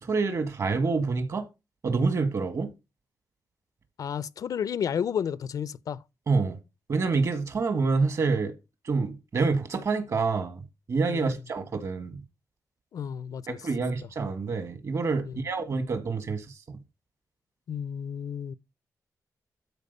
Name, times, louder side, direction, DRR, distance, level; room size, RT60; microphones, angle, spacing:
voice 1, 0.0-1.5 1.8-2.7 6.3-6.6 6.9-8.5 8.9-10.6 10.9-12.2 13.5-16.8, right 4 dB, 55° right, 1.8 m, -27 dB
voice 2, 4.0-6.0 11.1-11.3 12.9-13.6 15.2-15.3 17.7-18.5, left 8 dB, 70° left, 0.5 m, -32 dB
12.5 x 4.3 x 5.4 m
cardioid pair, 105°, 6 cm